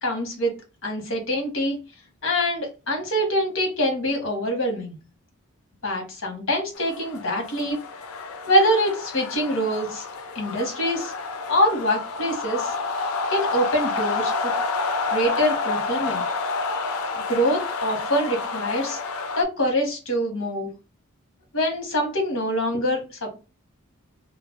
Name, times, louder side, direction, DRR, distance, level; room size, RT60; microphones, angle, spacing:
voice 1, 0.0-0.6 0.8-1.8 2.2-4.9 5.8-7.8 8.5-10.1 10.3-11.1 11.5-12.7 13.3-14.5 15.1-16.2 17.3-19.0 19.4-20.7 21.5-23.3, equal, 65° left, 2 dB, 0.9 m, -24 dB
sound 1, 6.8-19.4, left 3 dB, 90° left, 0.4 m, -29 dB
2.2 x 2.1 x 3.6 m, 0.30 s
head